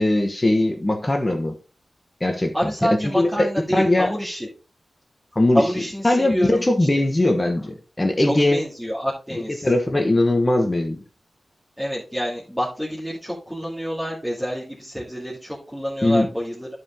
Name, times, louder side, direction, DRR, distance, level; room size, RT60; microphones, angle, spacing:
voice 1, 0.0-1.5 2.2-4.1 5.3-5.7 6.0-8.6 9.3-11.0 16.0-16.3, left 1 dB, 20° left, 1.1 m, -20 dB
voice 2, 2.5-4.5 5.5-6.7 8.3-9.7 11.8-16.7, equal, ahead, 2.2 m, -27 dB
12.0 x 4.8 x 3.6 m
wide cardioid pair, 120°, 0 cm